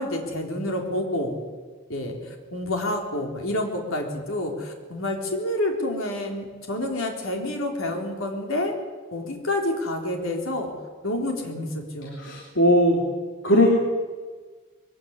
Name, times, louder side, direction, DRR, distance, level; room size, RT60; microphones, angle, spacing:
voice 1, 0.0-1.4 1.9-8.7 9.1-10.7 11.0-12.3, left 1 dB, 85° left, 2 dB, 4.0 m, -28 dB
voice 2, 12.2-13.0 13.4-13.8, left 1 dB, 65° left, 1 dB, 3.3 m, -18 dB
22.0 x 17.0 x 9.7 m, 1.4 s
head